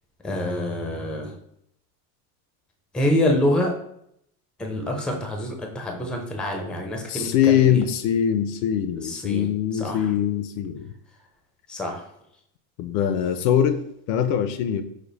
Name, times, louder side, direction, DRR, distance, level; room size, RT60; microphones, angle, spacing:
voice 1, 0.2-1.3 2.9-3.7 4.6-7.8 9.0-9.5 9.7-10.1 11.7-12.0, left 1 dB, ahead, 2 dB, 0.4 m, -26 dB
voice 2, 7.1-10.9 12.8-13.8 14.1-14.8, left 9 dB, 55° left, 10 dB, 0.5 m, -22 dB
5.1 x 2.0 x 3.9 m, 0.74 s
supercardioid pair, 120°, 46 cm